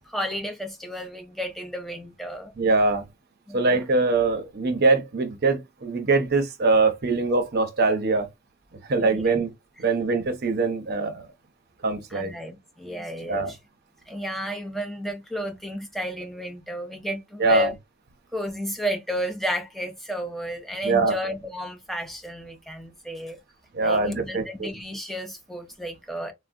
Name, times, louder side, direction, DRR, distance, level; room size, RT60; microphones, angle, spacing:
voice 1, 0.1-2.5 3.5-3.6 9.0-9.4 12.1-13.6 14.1-17.7 18.3-23.4 23.8-26.3, equal, ahead, 0.4 m, -32 dB
voice 2, 2.6-3.0 3.5-8.3 8.9-9.5 9.8-11.3 11.8-12.3 13.3-13.5 17.4-17.7 20.8-21.1 23.7-24.7, right 3 dB, 50° right, 0.7 m, -23 dB
3.5 x 2.1 x 2.5 m
head